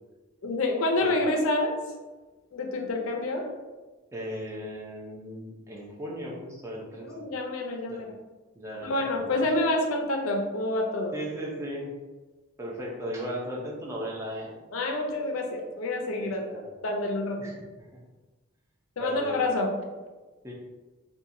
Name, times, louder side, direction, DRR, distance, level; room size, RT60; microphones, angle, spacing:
voice 1, 0.4-1.7 2.5-3.4 7.0-8.1 8.8-11.1 14.7-16.6 16.8-17.4 19.0-19.7, left 2 dB, 85° left, 2 dB, 0.5 m, -28 dB
voice 2, 4.1-7.2 7.9-8.0 8.6-9.5 11.1-11.9 12.6-14.6 16.2-16.7 17.4-17.9 19.0-19.4 20.4-20.5, equal, 15° right, -3 dB, 0.5 m, -37 dB
2.9 x 2.2 x 2.5 m, 1.2 s
head